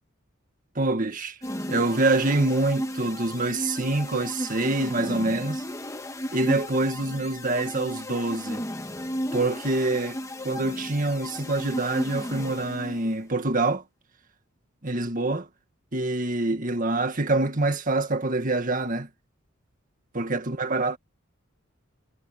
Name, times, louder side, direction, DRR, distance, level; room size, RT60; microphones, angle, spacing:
voice 1, 0.8-1.4 1.7-5.6 6.3-8.7 9.3-10.2 10.4-13.8 14.8-15.5 15.9-19.1 20.1-21.0, right 2 dB, 45° right, 2.0 m, -25 dB
sound 1, 1.4-13.2, equal, 15° left, 1.5 m, -34 dB
head